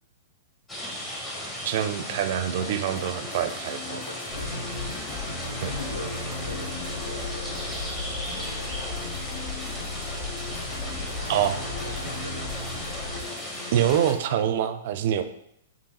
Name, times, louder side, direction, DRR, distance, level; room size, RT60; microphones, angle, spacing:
sound 1, 0.7-14.1, left 1 dB, 15° left, 1.0 m, -36 dB
voice 1, 1.6-4.0 5.6-5.7 11.3-11.6 13.7-15.2, right 10 dB, 50° right, 10 dB, 0.4 m, -25 dB
sound 2, 3.0-14.2, left 9 dB, 35° left, 0.4 m, -44 dB
voice 2, 3.9-4.9 5.6-7.6 8.4-8.7 10.2-10.3 11.2-11.4 11.7-12.5, left 1 dB, 85° left, 4 dB, 0.7 m, -40 dB
sound 3, 4.3-13.2, left 2 dB, 50° left, 1.6 m, -36 dB
6.7 x 2.8 x 2.8 m, 0.77 s
figure-of-eight pair, 110°, 0 cm